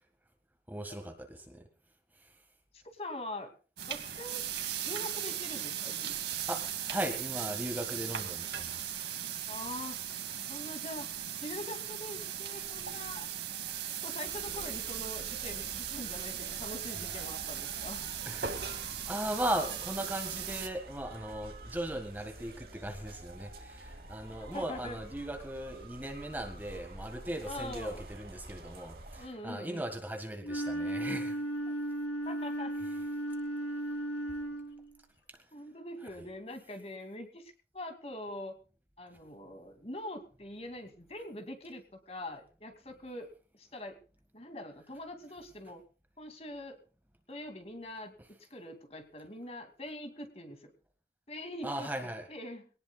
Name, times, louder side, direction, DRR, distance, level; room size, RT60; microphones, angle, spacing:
voice 1, 0.7-1.6 6.5-8.9 18.2-31.4 51.6-52.3, right 1 dB, 10° right, 5 dB, 1.7 m, -38 dB
voice 2, 2.7-3.5 3.9-4.4 4.8-6.2 9.5-10.0 10.5-11.1 11.4-13.3 14.0-18.2 24.3-25.0 27.4-28.0 29.2-29.9 31.7-31.8 32.2-32.7 35.5-38.6 39.0-44.0 44.3-45.8 46.2-46.8 47.3-50.7 51.3-52.7, left 1 dB, 35° left, 5 dB, 2.5 m, -43 dB
sound 1, 3.8-20.7, right 10 dB, 75° right, 2.2 m, -38 dB
sound 2, 14.2-29.3, right 2 dB, 55° right, 2.8 m, -49 dB
Wind instrument woodwind instrument, 30.4-34.9, right 1 dB, 85° left, 3.8 m, -35 dB
22.5 x 18.5 x 2.4 m, 0.37 s
head